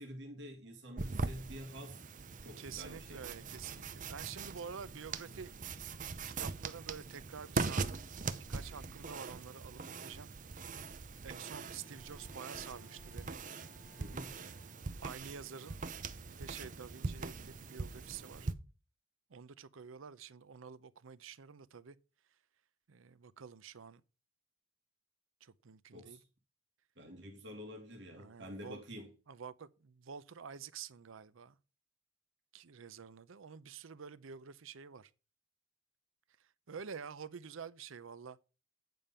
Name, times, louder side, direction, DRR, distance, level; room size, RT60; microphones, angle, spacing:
voice 1, 0.0-2.0 2.4-3.2 14.0-14.4 25.9-26.2 27.0-29.1, equal, 60° right, 2.0 m, -48 dB
sound 1, 1.0-18.5, right 4 dB, 40° right, 0.6 m, -42 dB
voice 2, 2.6-5.5 6.4-8.1 8.5-10.3 11.2-13.4 14.3-14.8 15.0-15.8 16.3-18.5 19.3-22.0 22.9-24.0 25.4-26.2 28.1-28.8 29.3-31.6 32.5-35.1 36.7-38.4, right 6 dB, 80° right, 0.6 m, -49 dB
Bowed string instrument, 11.6-15.3, left 4 dB, 60° left, 1.8 m, -65 dB
9.2 x 5.2 x 5.5 m
head